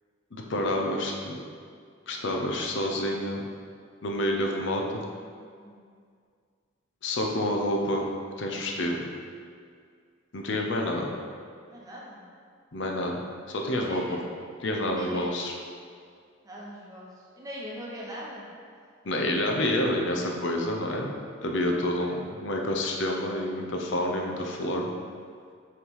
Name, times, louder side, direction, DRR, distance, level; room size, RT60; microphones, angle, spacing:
voice 1, 0.3-1.4 2.1-3.4 4.0-5.0 7.0-8.0 8.4-9.0 10.3-11.1 12.7-14.0 14.6-15.5 19.0-21.1 21.4-24.9, left 1 dB, 60° left, 1 dB, 0.6 m, -28 dB
voice 2, 11.7-12.2 13.8-14.2 14.9-15.3 16.4-18.4, right 1 dB, 15° right, -5 dB, 1.0 m, -40 dB
5.7 x 3.2 x 5.4 m, 2.1 s
head